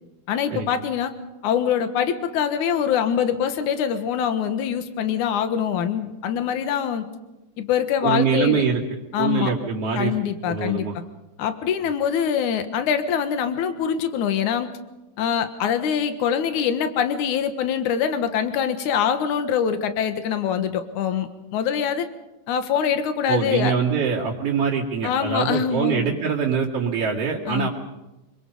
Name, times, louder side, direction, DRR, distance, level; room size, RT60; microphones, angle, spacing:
voice 1, 0.3-1.1 1.4-7.0 7.6-8.6 9.1-9.5 10.0-10.9 11.4-14.7 15.2-22.1 22.5-23.7 25.0-26.1 27.5-27.7, left 8 dB, 75° left, 9 dB, 2.8 m, -24 dB
voice 2, 8.0-8.8 9.2-10.2 10.5-10.9 23.3-27.7, right 6 dB, 50° right, -6 dB, 3.3 m, -23 dB
27.0 x 24.0 x 5.5 m, 1.0 s
omnidirectional pair, 3.5 m